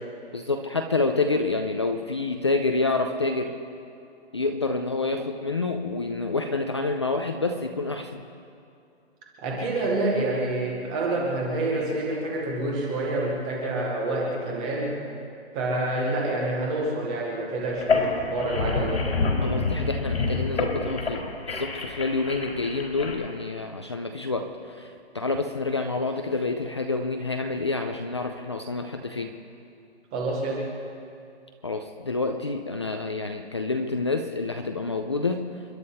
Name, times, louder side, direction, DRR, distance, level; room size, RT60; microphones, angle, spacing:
voice 1, 0.3-3.5 4.3-8.2 19.4-29.3 31.6-35.4, left 3 dB, 25° left, 5 dB, 0.5 m, -28 dB
voice 2, 9.4-15.0 15.5-19.1 30.1-30.7, right 2 dB, 5° right, -2 dB, 0.7 m, -27 dB
sound 1, 17.7-23.1, left 3 dB, 85° left, 4.4 m, -27 dB
29.5 x 11.5 x 4.2 m, 2.6 s
hypercardioid pair, 175°, 32 cm